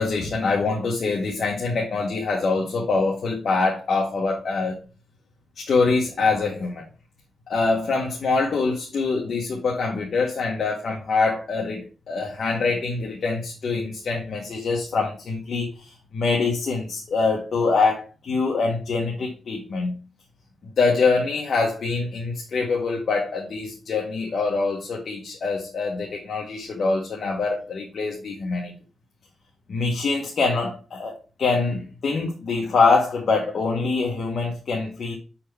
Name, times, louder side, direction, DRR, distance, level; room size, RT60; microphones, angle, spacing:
voice 1, 0.0-4.8 5.6-6.8 7.5-20.0 20.8-28.7 29.7-35.2, left 4 dB, 50° left, 1.1 m, -24 dB
6.7 x 4.2 x 3.4 m
wide cardioid pair, 150°, 0 cm